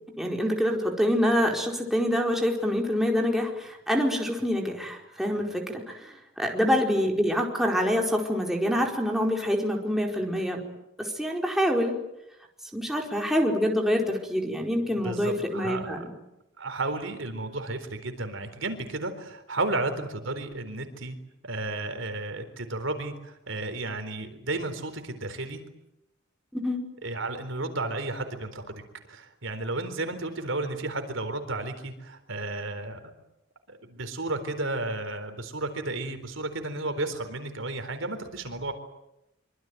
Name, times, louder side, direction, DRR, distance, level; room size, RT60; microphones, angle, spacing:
voice 1, 0.2-10.6 11.0-12.0 12.7-16.1 26.5-26.8, equal, ahead, 0 dB, 4.6 m, -26 dB
voice 2, 14.9-16.0 16.6-21.2 21.4-25.6 27.0-28.8 29.1-33.1 33.7-38.7, right 2 dB, 70° right, 8 dB, 4.1 m, -33 dB
25.5 x 25.0 x 9.3 m, 0.89 s
head